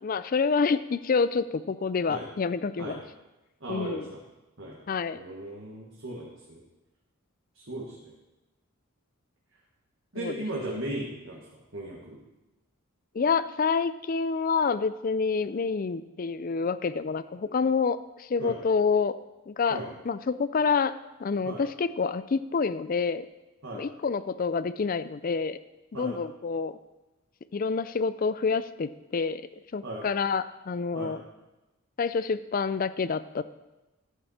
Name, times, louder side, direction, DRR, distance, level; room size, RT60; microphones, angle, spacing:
voice 1, 0.0-3.0 3.7-4.1 4.9-5.2 10.2-10.3 13.1-19.2 19.5-23.3 23.7-25.6 25.9-26.8 27.5-31.2 32.0-33.4, left 5 dB, 40° left, 15 dB, 0.4 m, -28 dB
voice 2, 3.6-4.2 4.6-4.8 5.1-6.6 7.5-8.1 10.1-12.2 18.4-18.6 19.7-19.9 21.4-21.6 23.6-23.8 25.9-26.2 29.8-30.1 30.9-31.2, right 1 dB, 60° right, -3 dB, 1.6 m, -37 dB
12.0 x 8.4 x 4.2 m, 1.0 s
head